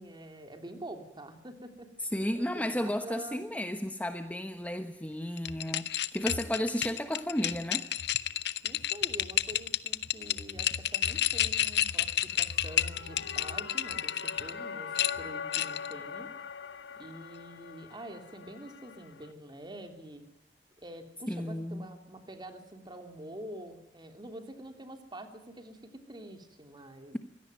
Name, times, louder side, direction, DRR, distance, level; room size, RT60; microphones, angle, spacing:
voice 1, 0.0-3.4 8.6-16.3 16.9-20.2 20.8-27.1, right 1 dB, 25° right, 6 dB, 3.1 m, -46 dB
voice 2, 2.0-7.9 21.3-21.9, equal, 10° left, 8 dB, 1.1 m, -33 dB
sound 1, 5.4-14.5 15.0-15.9, left 12 dB, 65° left, 0.9 m, -31 dB
sound 2, 12.4-19.3, left 6 dB, 80° left, 1.4 m, -42 dB
24.0 x 17.5 x 9.1 m, 0.90 s
head